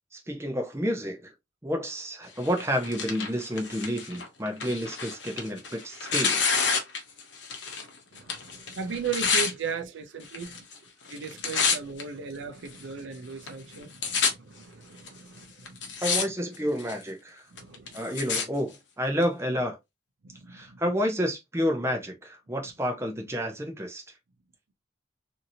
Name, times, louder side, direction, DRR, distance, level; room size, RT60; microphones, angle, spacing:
voice 1, 0.1-1.3 1.6-6.4 16.0-17.4 17.9-19.8 20.5-24.0, equal, 15° right, 0.6 m, -30 dB
Tearing, 2.4-7.9 8.2-9.5 10.3-10.8 11.1-12.0 12.7-12.8 13.5-13.6 13.7-14.3 15.1-15.2 15.7-16.2 16.5-17.0 17.6-18.4 19.2-19.3, left 5 dB, 70° left, 0.8 m, -28 dB
voice 2, 8.1-10.6 11.1-15.9 17.5-18.0 20.2-20.7, right 6 dB, 75° right, 0.5 m, -37 dB
2.8 x 2.6 x 2.6 m
head